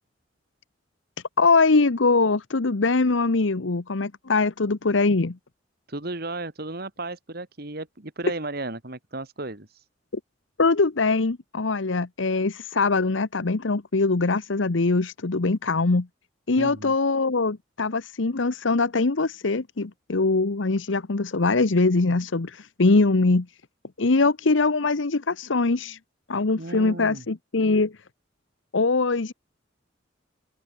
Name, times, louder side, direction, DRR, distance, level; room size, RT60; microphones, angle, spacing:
voice 1, 1.4-5.4 10.6-16.1 16.5-23.5 24.0-26.0 26.3-27.9 28.7-29.3, left 3 dB, 80° left, 1.0 m, -22 dB
voice 2, 5.9-9.8 16.6-16.9 26.6-27.2, right 2 dB, 55° right, 2.7 m, -34 dB
open air
head